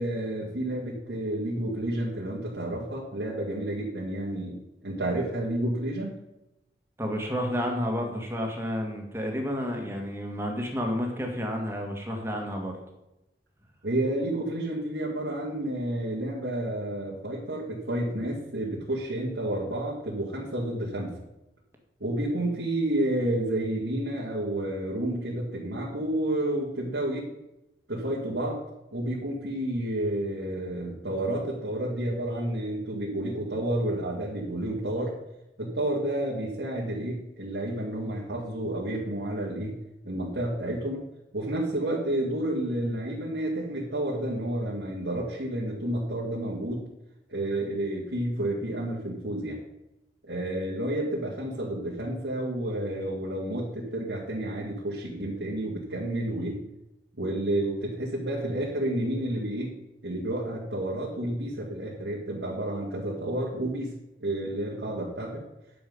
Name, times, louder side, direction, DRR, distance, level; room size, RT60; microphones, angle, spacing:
voice 1, 0.0-4.6 4.8-6.1 13.8-21.1 22.0-27.3 27.9-28.6 28.9-35.1 35.6-39.8 40.0-41.0 41.3-46.8 47.3-49.6 50.3-56.6 57.2-59.7 60.0-63.9 64.2-65.4, right 1 dB, 90° right, -5 dB, 2.2 m, -30 dB
voice 2, 7.0-12.7, equal, 15° right, 1 dB, 1.9 m, -30 dB
10.5 x 7.0 x 5.5 m, 0.93 s
head